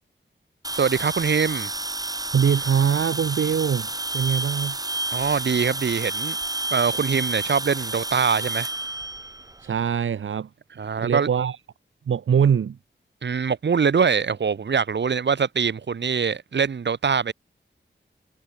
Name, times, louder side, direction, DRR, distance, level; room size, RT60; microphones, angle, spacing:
sound 1, 0.6-9.9, right 2 dB, 20° right, 2.6 m, -30 dB
voice 1, 0.7-1.7 5.1-6.4 6.7-8.7 10.8-11.3 13.2-17.3, right 6 dB, 65° right, 2.3 m, -23 dB
voice 2, 2.3-3.9 4.1-4.8 9.6-10.5 11.0-11.6 12.1-12.8, right 7 dB, 85° right, 1.3 m, -22 dB
wide cardioid pair, 125°, 20 cm